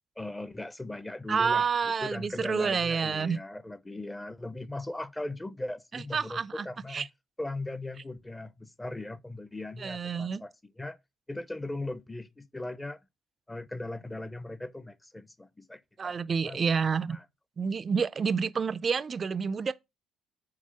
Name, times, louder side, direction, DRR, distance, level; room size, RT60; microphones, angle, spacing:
voice 1, 0.2-1.7 2.0-7.1 7.4-11.0 11.3-13.0 13.5-16.1 16.4-16.6 17.1-17.2, left 2 dB, 15° left, 0.6 m, -38 dB
voice 2, 1.3-3.4 5.9-7.1 9.8-10.4 16.0-17.2 17.6-19.7, right 6 dB, 40° right, 0.4 m, -29 dB
4.7 x 4.1 x 5.7 m
supercardioid pair, 75°, 0 cm